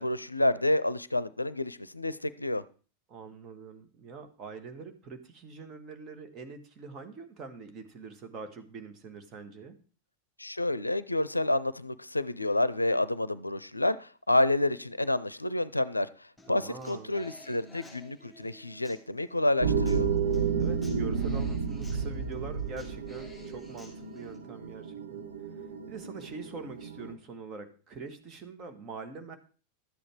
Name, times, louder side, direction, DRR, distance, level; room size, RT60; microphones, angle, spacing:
voice 1, 0.0-2.6 10.4-16.1 16.5-20.1, left 1 dB, 85° left, 0.5 m, -29 dB
voice 2, 3.1-9.7 16.5-17.2 20.6-25.2 25.5-29.4, right 4 dB, 30° right, 1.9 m, -44 dB
Human voice / Acoustic guitar, 16.4-24.4, left 1 dB, ahead, 5.4 m, -55 dB
sound 1, 19.6-27.1, right 6 dB, 70° right, 1.5 m, -31 dB
12.5 x 8.6 x 4.8 m
figure-of-eight pair, 90°, 0 cm